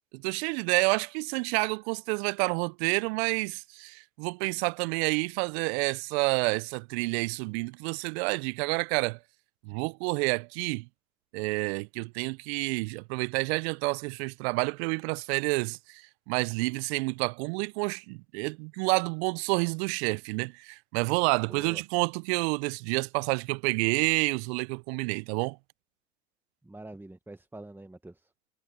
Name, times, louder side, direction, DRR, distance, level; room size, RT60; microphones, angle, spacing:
voice 1, 0.1-9.2 9.6-10.9 11.3-16.0 16.3-25.6, right 30 dB, 60° right, 0.9 m, -29 dB
voice 2, 21.5-21.8 26.6-28.3, right 2 dB, 5° right, 1.6 m, -45 dB
hypercardioid pair, 70°, 35 cm